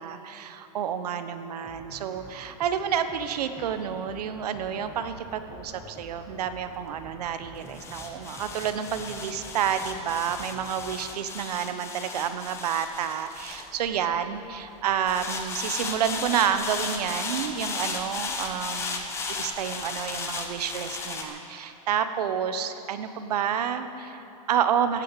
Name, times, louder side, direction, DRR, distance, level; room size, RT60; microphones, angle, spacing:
voice 1, 0.0-25.0, right 8 dB, 75° right, 10 dB, 1.1 m, -29 dB
sound 1, 1.6-11.0, right 2 dB, 10° right, 1.2 m, -48 dB
sound 2, 4.9-14.4 15.1-21.2, left 4 dB, 15° left, 1.0 m, -35 dB
15.0 x 9.3 x 9.0 m, 2.9 s
supercardioid pair, 170°, 20 cm